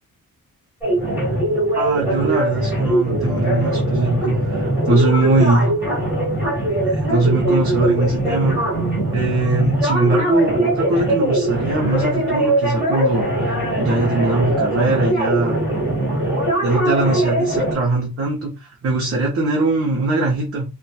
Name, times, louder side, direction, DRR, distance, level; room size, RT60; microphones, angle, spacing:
sound 1, 0.8-17.7, right 1 dB, 5° right, 1.4 m, -21 dB
voice 1, 1.7-5.7 6.8-8.6 9.1-13.3 13.7-15.6 16.6-20.6, right 2 dB, 40° right, -2 dB, 0.6 m, -21 dB
2.8 x 2.2 x 2.2 m, 0.29 s
wide cardioid pair, 175°, 35 cm